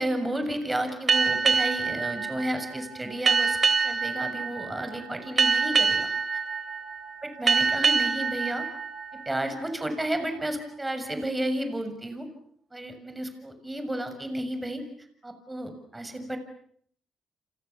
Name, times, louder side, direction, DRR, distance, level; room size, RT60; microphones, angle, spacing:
voice 1, 0.0-3.6 3.8-6.4 7.2-8.7 9.2-12.3 12.7-14.8 15.2-16.4, right 1 dB, 15° right, 7 dB, 6.7 m, -32 dB
sound 1, 1.1-10.2, right 5 dB, 40° right, 3.2 m, -26 dB
29.0 x 27.5 x 7.2 m, 0.64 s
cardioid pair, 90°, 0 cm